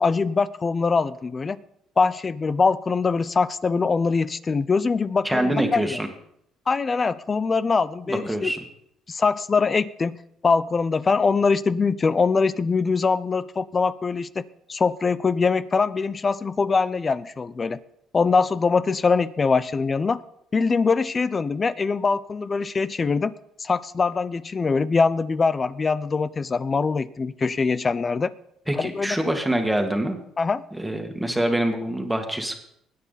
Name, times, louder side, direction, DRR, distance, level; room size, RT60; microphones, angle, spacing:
voice 1, 0.0-1.6 2.0-5.9 6.7-8.5 9.1-14.4 14.7-17.8 18.1-20.2 20.5-23.3 23.6-28.3 28.8-29.2 30.4-30.6, left 4 dB, 25° left, 17 dB, 0.5 m, -23 dB
voice 2, 5.2-6.1 8.1-8.6 28.7-30.2 30.7-32.6, right 1 dB, 5° right, 4 dB, 1.9 m, -25 dB
20.0 x 9.2 x 4.1 m, 0.74 s
cardioid pair, 120°, 0 cm